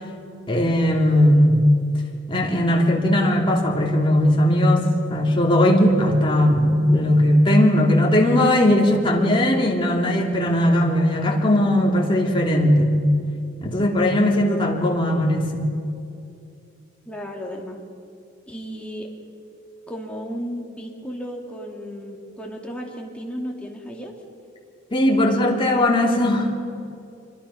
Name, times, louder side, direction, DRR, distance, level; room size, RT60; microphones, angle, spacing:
voice 1, 0.5-1.6 2.3-12.9 13.6-15.7 24.9-26.5, left 1 dB, 25° left, -1 dB, 2.9 m, -18 dB
voice 2, 17.1-17.8 18.5-19.1 19.9-24.1, equal, 5° left, -1 dB, 2.6 m, -34 dB
25.0 x 23.0 x 5.8 m, 2.5 s
head